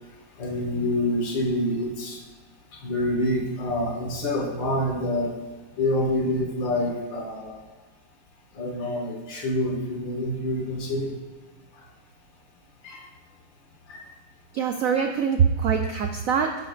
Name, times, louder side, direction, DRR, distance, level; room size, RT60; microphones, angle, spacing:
voice 1, 0.4-2.2 2.7-5.3 5.8-7.6 8.5-11.1 12.8-13.0 13.9-14.0 15.8-15.9, left 1 dB, 70° left, 1 dB, 2.1 m, -27 dB
voice 2, 14.5-16.6, right 7 dB, 90° right, 5 dB, 0.7 m, -23 dB
11.0 x 8.3 x 2.5 m, 1.3 s
omnidirectional pair, 2.1 m